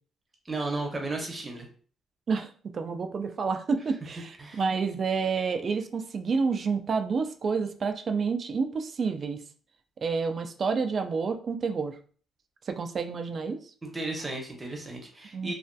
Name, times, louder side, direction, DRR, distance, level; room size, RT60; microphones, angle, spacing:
voice 1, 0.4-1.7 4.4-4.6 13.8-15.5, right 2 dB, 25° right, 2 dB, 0.7 m, -34 dB
voice 2, 2.3-9.4 10.0-12.0 12.7-13.6 15.3-15.5, right 5 dB, 45° right, 7 dB, 0.3 m, -29 dB
2.5 x 2.3 x 2.2 m, 0.43 s
cardioid pair, 90°, 0 cm